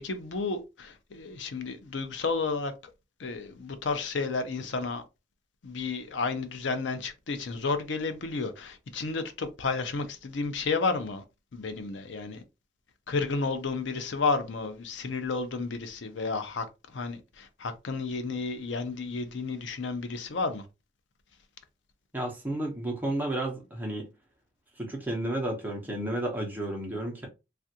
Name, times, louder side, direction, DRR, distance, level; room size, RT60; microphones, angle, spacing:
voice 1, 0.0-2.7 3.2-5.0 5.6-11.2 11.5-12.4 13.1-16.6 16.9-20.6, left 4 dB, 90° left, 0.6 m, -32 dB
voice 2, 22.1-24.1 24.8-27.3, right 1 dB, 10° right, 0.7 m, -32 dB
3.3 x 2.4 x 2.7 m
head